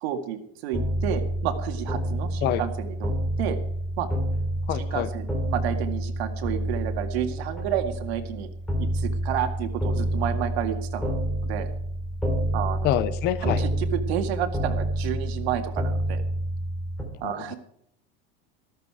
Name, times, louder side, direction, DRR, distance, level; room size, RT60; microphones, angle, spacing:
voice 1, 0.0-3.1 3.4-3.6 4.0-4.1 4.7-8.5 8.8-11.7 12.5-12.9 13.4-16.2 17.2-17.6, right 10 dB, 90° right, 6 dB, 2.1 m, -30 dB
sound 1, 0.7-17.0, right 1 dB, 5° left, 3.0 m, -28 dB
voice 2, 4.7-5.1 12.8-13.6 17.2-17.3, left 12 dB, 35° left, 15 dB, 0.6 m, -25 dB
13.5 x 13.5 x 4.8 m, 0.73 s
cardioid pair, 175°, 31 cm